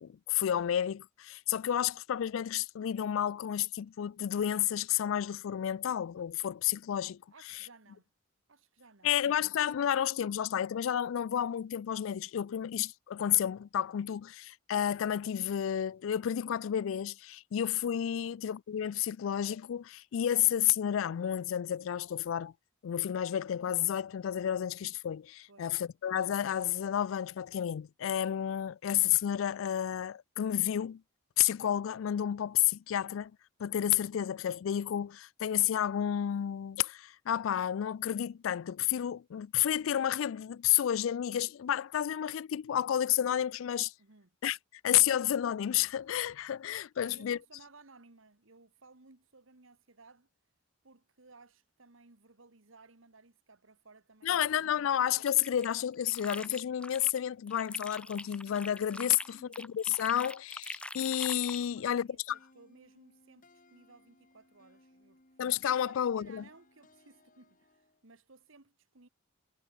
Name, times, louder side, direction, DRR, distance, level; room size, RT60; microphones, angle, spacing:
voice 1, 0.0-7.2 9.0-22.5 22.8-31.0 31.4-33.3 33.6-43.9 44.4-44.6 44.8-47.4 54.2-62.4 65.4-66.4, left 10 dB, 80° left, 0.3 m, -31 dB
voice 2, 7.3-8.1 8.5-9.1 18.2-18.5 25.5-25.8 44.0-44.3 47.0-50.3 50.8-55.0 59.2-59.7 61.6-65.2 65.8-69.1, right 3 dB, 75° right, 1.7 m, -59 dB
sound 1, 55.0-57.2 57.5-61.7, left 1 dB, 5° left, 0.9 m, -44 dB
sound 2, 62.3-68.1, left 2 dB, 40° left, 3.6 m, -64 dB
head